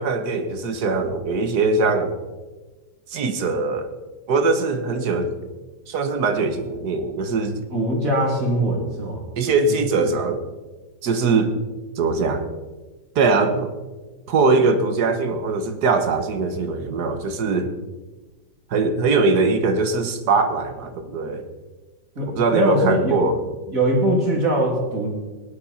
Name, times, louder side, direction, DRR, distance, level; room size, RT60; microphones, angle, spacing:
voice 1, 0.0-2.1 3.1-3.9 4.3-5.4 5.9-7.6 9.4-10.4 11.0-11.5 12.0-12.5 13.2-13.7 14.3-17.7 18.7-21.4 22.3-23.4, right 3 dB, 65° right, 8 dB, 1.7 m, -21 dB
voice 2, 7.7-9.2 22.1-23.3 23.7-25.1, right 1 dB, 50° right, 0 dB, 3.2 m, -21 dB
18.0 x 11.5 x 4.2 m, 1.2 s
omnidirectional pair, 1.9 m